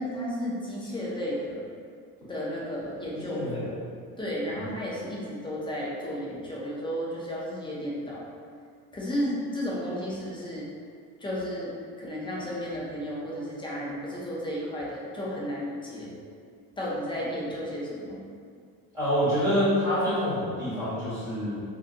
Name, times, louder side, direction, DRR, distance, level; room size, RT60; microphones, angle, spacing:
voice 1, 0.0-1.6 2.3-3.4 4.2-8.2 8.9-10.7 11.2-11.7 12.0-16.1 16.8-18.2, equal, 15° left, -6 dB, 0.3 m, -33 dB
voice 2, 3.3-3.6 4.5-4.7 18.9-21.6, equal, 10° right, -13 dB, 1.4 m, -26 dB
2.5 x 2.5 x 2.4 m, 2.2 s
cardioid pair, 135°, 38 cm